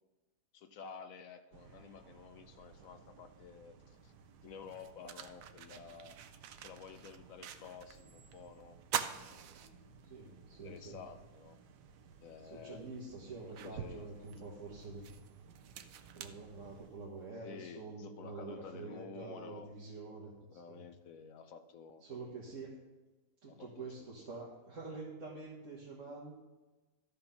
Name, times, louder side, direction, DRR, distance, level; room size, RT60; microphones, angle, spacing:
voice 1, 0.5-4.1 4.4-6.2 6.6-8.8 9.1-9.9 10.6-11.6 12.2-12.8 13.6-14.1 17.4-19.7 20.5-22.0 23.5-24.1, left 6 dB, 65° left, 9 dB, 0.9 m, -51 dB
sound 1, 1.5-16.9, right 5 dB, 85° right, 1.4 m, -59 dB
sound 2, 4.0-4.1 4.6-8.0 8.3-8.4 8.8-10.3 10.8-10.9 12.3-12.4 12.9-17.1, right 9 dB, 70° right, 0.9 m, -44 dB
voice 2, 10.0-11.0 12.5-15.1 16.1-20.8 22.0-22.8 23.4-26.3, right 3 dB, 50° right, -6 dB, 1.8 m, -47 dB
13.5 x 5.2 x 5.7 m, 1.2 s
omnidirectional pair, 1.8 m